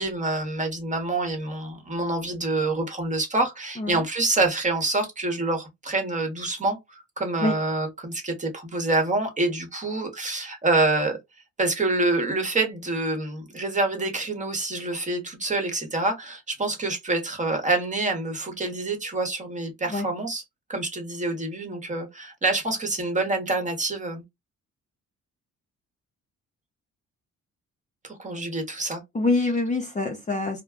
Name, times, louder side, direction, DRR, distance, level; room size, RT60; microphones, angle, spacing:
voice 1, 0.0-11.2 11.6-20.4 20.7-24.2 28.0-29.0, right 2 dB, 25° right, 1.1 m, -26 dB
voice 2, 29.1-30.6, left 2 dB, 25° left, 0.7 m, -25 dB
2.2 x 2.1 x 3.5 m
cardioid pair, 90°, 30 cm